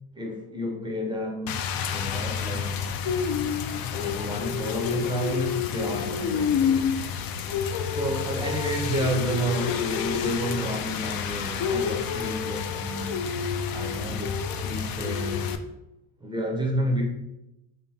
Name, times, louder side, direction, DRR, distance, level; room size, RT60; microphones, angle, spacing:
voice 1, 0.1-1.5 1.9-2.7 3.9-6.9 7.9-13.2 13.7-15.4 16.2-17.0, right 1 dB, 10° right, 0.7 m, -31 dB
Rain, 1.5-15.6, left 7 dB, 50° left, 0.4 m, -29 dB
4.3 x 3.5 x 2.9 m
supercardioid pair, 100°, 49 cm